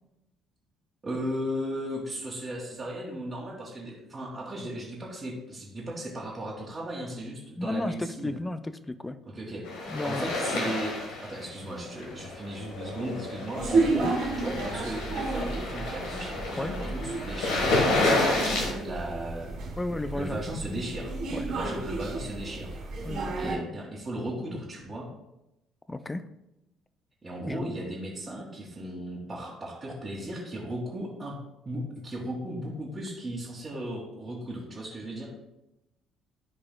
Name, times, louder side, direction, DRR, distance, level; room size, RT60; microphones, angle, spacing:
voice 1, 1.0-8.4 9.3-9.7 10.0-14.1 14.4-19.5 20.1-21.1 21.4-22.7 23.4-25.1 27.2-31.4 31.7-35.3, right 1 dB, 30° right, -6 dB, 1.8 m, -36 dB
voice 2, 7.6-9.2 9.9-10.4 14.0-14.1 16.5-16.8 19.8-20.4 21.3-21.5 23.0-23.6 25.9-26.2 27.5-27.7, left 2 dB, 15° left, 12 dB, 0.5 m, -33 dB
sound 1, 9.7-18.7, left 2 dB, 70° left, 1.4 m, -30 dB
sound 2, 13.5-23.6, right 3 dB, 60° right, 2.4 m, -32 dB
12.0 x 4.8 x 2.3 m, 0.90 s
hypercardioid pair, 50°, 0 cm